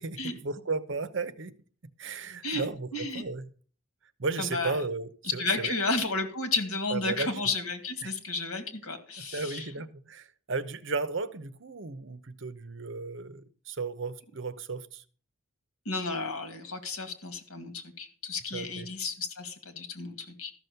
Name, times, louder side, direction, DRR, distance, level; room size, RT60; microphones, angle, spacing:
voice 1, 0.0-1.6 2.0-3.5 4.2-5.7 6.9-7.3 8.0-8.1 9.2-15.0 18.5-18.9, right 4 dB, 55° right, 0.8 m, -35 dB
voice 2, 2.9-3.2 4.4-4.8 5.3-9.7 15.9-20.5, left 3 dB, 85° left, 2.3 m, -32 dB
13.5 x 6.2 x 6.7 m
head